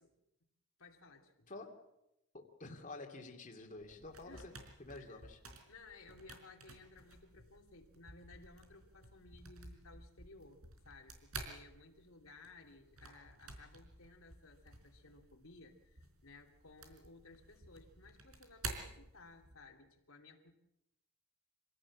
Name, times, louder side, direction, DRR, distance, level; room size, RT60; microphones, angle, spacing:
voice 1, 0.8-1.5 4.2-4.6 4.9-5.3 5.7-20.5, left 3 dB, 70° left, 1 dB, 2.9 m, -58 dB
voice 2, 2.3-4.5 4.8-5.4, left 2 dB, 35° left, 1 dB, 2.7 m, -49 dB
sound 1, 3.7-19.7, right 3 dB, 85° right, 4.4 m, -52 dB
26.0 x 17.5 x 7.4 m, 0.86 s
head